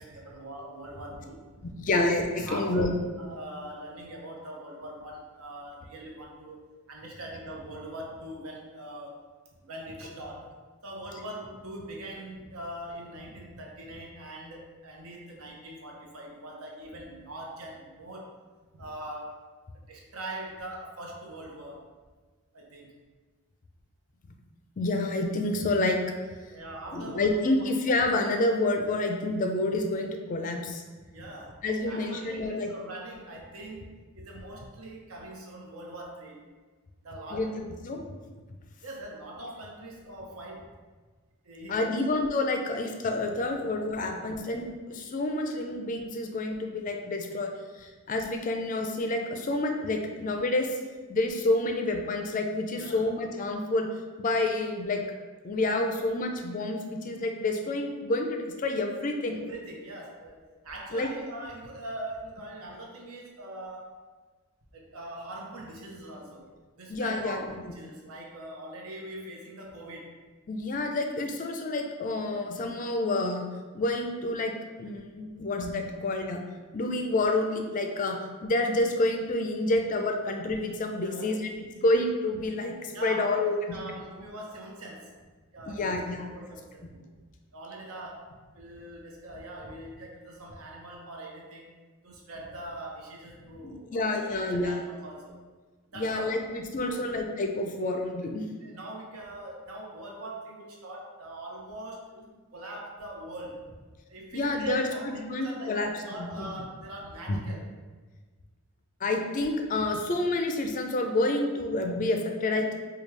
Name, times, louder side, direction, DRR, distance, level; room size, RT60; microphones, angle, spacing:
voice 1, 0.0-2.0 2.4-2.8 3.2-9.2 9.6-10.5 10.8-18.3 18.7-19.4 19.7-21.9 22.5-22.9 26.5-27.7 31.1-36.4 37.0-37.6 38.8-40.8 41.4-42.0 52.7-53.1 59.3-64.0 64.7-66.5 66.8-70.1 81.0-81.4 82.9-85.1 85.5-87.2 87.5-91.7 92.0-95.4 95.9-96.4 96.8-97.1 98.6-103.8 104.1-107.7, right 1 dB, 75° right, -1 dB, 0.8 m, -42 dB
voice 2, 1.8-2.2 2.5-3.2 24.8-26.0 26.9-30.8 31.6-32.7 37.3-38.0 39.4-39.5 41.7-47.5 47.8-50.7 51.1-53.9 54.2-55.0 55.4-59.4 60.9-61.1 66.9-67.7 70.5-73.5 73.7-74.5 74.8-76.4 76.7-83.8 85.7-86.3 93.6-94.8 95.9-98.4 104.3-105.9 106.2-106.5 107.3-107.4 109.0-112.7, left 2 dB, 35° left, 4 dB, 0.4 m, -28 dB
5.0 x 2.3 x 3.2 m, 1.4 s
head